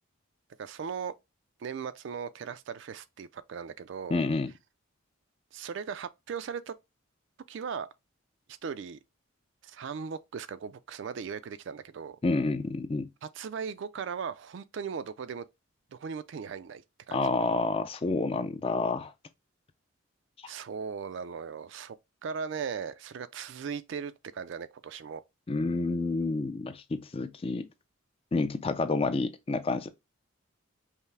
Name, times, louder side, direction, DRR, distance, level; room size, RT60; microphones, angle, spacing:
voice 1, 0.6-1.1 1.6-4.2 5.5-6.7 7.5-7.9 8.6-9.0 9.6-12.2 13.2-15.4 15.9-17.2 20.5-22.0 22.2-25.2, right 6 dB, 55° right, 0.3 m, -38 dB
voice 2, 4.1-4.5 12.2-13.1 17.1-19.1 25.5-27.7 28.3-29.9, left 3 dB, 25° left, 0.3 m, -29 dB
5.5 x 2.0 x 3.2 m
head